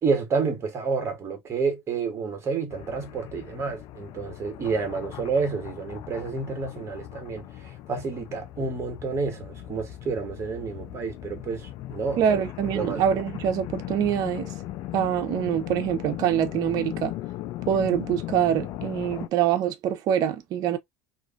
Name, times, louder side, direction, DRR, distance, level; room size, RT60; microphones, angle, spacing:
voice 1, 0.0-12.4 12.7-13.0, right 5 dB, 35° right, 1.2 m, -29 dB
sound 1, 2.7-19.3, left 14 dB, 60° left, 0.4 m, -38 dB
voice 2, 12.2-14.5 14.9-17.1 17.7-20.8, right 9 dB, 55° right, 0.6 m, -25 dB
2.5 x 2.4 x 2.4 m
hypercardioid pair, 80°, 7 cm